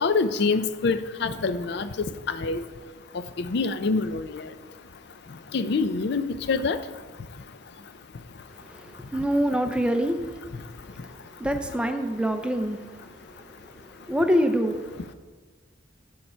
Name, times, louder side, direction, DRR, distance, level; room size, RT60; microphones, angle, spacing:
voice 1, 0.0-1.9 2.3-2.6 3.4-4.4 5.5-6.8, left 4 dB, 60° left, 12 dB, 0.5 m, -25 dB
voice 2, 9.1-10.2 11.4-12.8 14.1-14.7, equal, 5° right, 6 dB, 0.5 m, -24 dB
7.5 x 6.9 x 4.4 m, 1.4 s
head